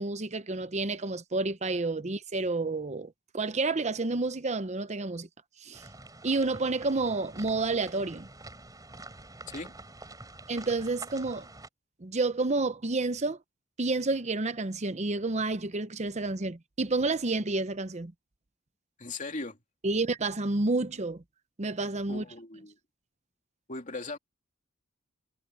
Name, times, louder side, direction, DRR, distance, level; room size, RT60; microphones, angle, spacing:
voice 1, 0.0-5.3 5.6-5.8 6.2-8.3 10.5-11.5 12.0-13.4 13.8-18.1 19.8-21.2 21.6-22.2, right 3 dB, 35° right, 0.8 m, -30 dB
sound 1, 5.7-11.7, right 2 dB, 20° right, 4.4 m, -47 dB
voice 2, 19.0-19.6 22.1-22.8 23.7-24.2, left 3 dB, 40° left, 2.9 m, -38 dB
head